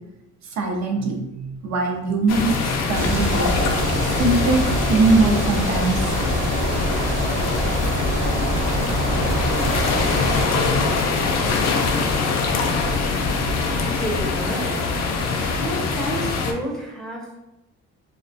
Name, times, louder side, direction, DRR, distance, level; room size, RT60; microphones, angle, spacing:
voice 1, 0.4-3.5 3.8-6.1, right 3 dB, 65° right, 1 dB, 0.5 m, -22 dB
sound 1, 2.3-16.5, left 4 dB, 60° left, 0.5 m, -23 dB
sound 2, 2.9-10.5, right 1 dB, 40° right, 0.9 m, -25 dB
sound 3, 3.8-15.1, right 1 dB, 90° right, 0.9 m, -46 dB
voice 2, 13.9-14.9 15.5-17.4, right 1 dB, ahead, -3 dB, 0.5 m, -30 dB
2.3 x 2.2 x 2.6 m, 0.95 s
cardioid pair, 90°, 30 cm